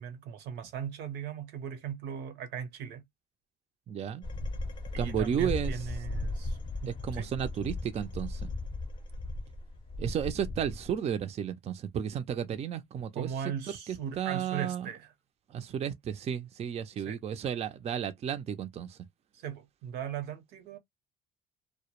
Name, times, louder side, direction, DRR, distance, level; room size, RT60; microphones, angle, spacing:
voice 1, 0.0-3.0 4.9-7.3 13.1-15.1 17.1-17.2 19.3-20.8, right 8 dB, 85° right, 0.7 m, -38 dB
voice 2, 3.9-4.2 5.0-5.8 6.8-8.5 10.0-13.3 13.9-14.9 15.5-19.0, right 9 dB, 40° right, 0.4 m, -33 dB
sound 1, 4.2-11.0, left 2 dB, 30° left, 0.5 m, -37 dB
2.1 x 2.0 x 2.9 m
cardioid pair, 110°, 17 cm